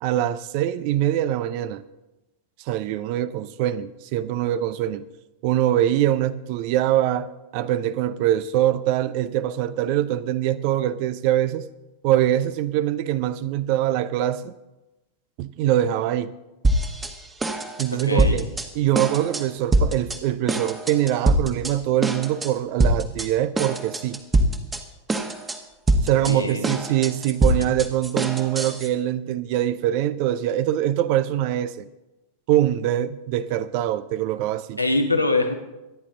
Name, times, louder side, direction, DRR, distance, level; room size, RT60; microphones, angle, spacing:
voice 1, 0.0-1.8 2.6-5.0 5.4-11.7 12.0-14.5 15.4-16.3 17.8-18.5 18.7-24.2 26.0-31.9 32.5-34.8, right 12 dB, 45° right, 0.7 m, -23 dB
sound 1, 16.6-17.1 17.4-18.7 18.9-19.4 19.7-20.2 20.5-21.7 22.0-22.5 22.8-23.3 23.6-24.8 25.1-25.6 25.9-28.9, right 1 dB, 15° right, 1.5 m, -23 dB
voice 2, 17.9-18.4 26.2-26.8 34.8-35.5, left 2 dB, 85° left, 1.6 m, -23 dB
25.0 x 10.0 x 3.8 m
figure-of-eight pair, 90°, 0 cm